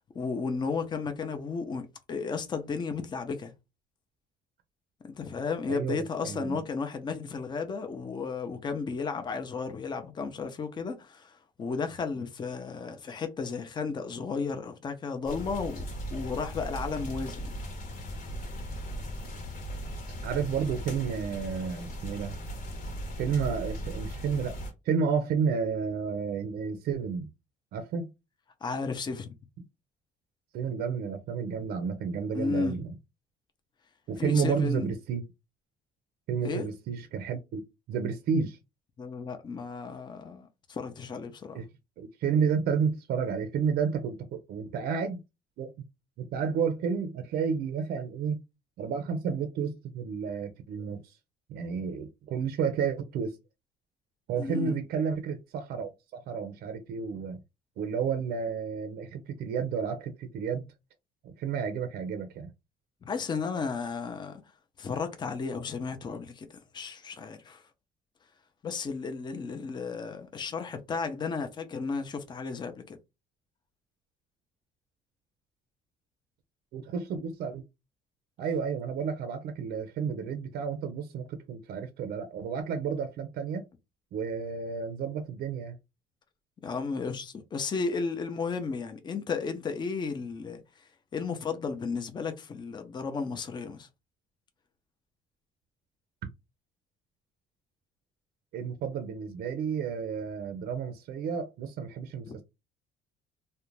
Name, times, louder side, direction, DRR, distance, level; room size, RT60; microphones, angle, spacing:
voice 1, 0.1-3.5 5.0-17.5 28.6-29.3 32.3-32.8 34.2-34.9 36.4-36.6 39.0-41.6 54.4-54.8 63.0-64.4 64.8-66.5 66.7-67.6 68.6-73.0 86.6-90.6 91.1-93.9 102.3-102.4, left 5 dB, 25° left, 0.5 m, -34 dB
voice 2, 5.7-6.6 20.2-22.3 23.2-24.6 24.9-27.3 27.7-28.1 30.5-32.9 34.1-35.2 36.3-37.6 37.9-38.6 41.5-41.6 42.0-45.2 45.6-45.7 46.2-48.4 48.8-51.0 51.5-53.4 54.3-57.4 57.8-60.7 61.2-62.5 76.7-77.6 78.4-83.7 84.1-85.8 98.5-102.4, right 6 dB, 65° right, 0.5 m, -31 dB
sound 1, 15.2-24.7, equal, 55° left, 0.9 m, -38 dB
2.4 x 2.1 x 3.0 m
cardioid pair, 110°, 17 cm